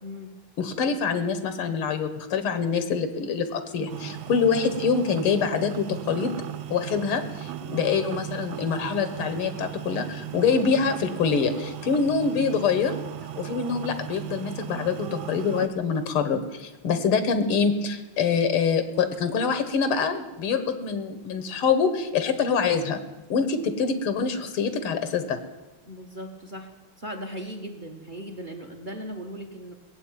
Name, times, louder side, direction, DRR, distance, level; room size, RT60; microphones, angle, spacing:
voice 1, 0.0-0.3 25.9-26.7 27.0-29.7, equal, 25° right, 6 dB, 1.2 m, -38 dB
voice 2, 0.6-6.3 6.7-12.9 13.4-23.0 23.3-25.4, left 5 dB, 80° left, 10 dB, 2.2 m, -25 dB
sound 1, 3.9-15.7, right 12 dB, 75° right, 1.5 m, -37 dB
18.0 x 8.1 x 9.1 m, 1.1 s
omnidirectional pair, 2.4 m